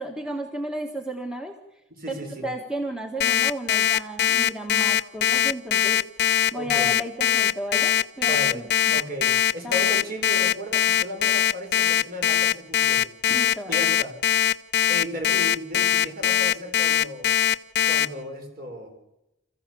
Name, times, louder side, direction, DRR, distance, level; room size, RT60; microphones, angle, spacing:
voice 1, 0.0-1.6 2.1-2.2 2.4-6.0 6.5-9.0 9.6-9.8 13.3-13.8, right 1 dB, 5° right, 3 dB, 1.6 m, -33 dB
voice 2, 1.9-2.5 6.6-6.9 8.2-13.1 13.7-14.1 14.9-17.3 17.9-18.9, equal, 45° right, 4 dB, 4.5 m, -35 dB
Alarm, 3.2-18.1, left 11 dB, 50° left, 0.7 m, -21 dB
27.5 x 15.0 x 7.1 m, 0.93 s
head